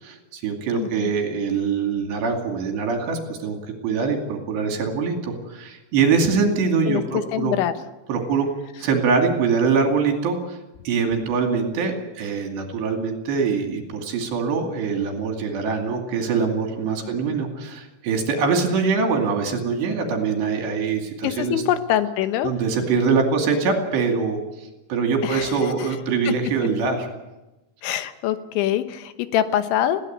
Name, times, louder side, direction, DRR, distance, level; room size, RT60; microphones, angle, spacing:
voice 1, 0.0-3.6 3.8-7.5 8.1-8.5 8.8-10.6 10.8-21.6 22.4-27.1, right 5 dB, 70° right, 3 dB, 4.5 m, -23 dB
voice 2, 0.7-1.1 6.4-6.5 6.9-7.0 7.3-7.7 21.2-22.5 25.2-25.9 26.3-26.4 27.8-30.0, left 11 dB, 90° left, 10 dB, 3.5 m, -24 dB
20.5 x 16.5 x 9.2 m, 1.0 s
omnidirectional pair, 5.2 m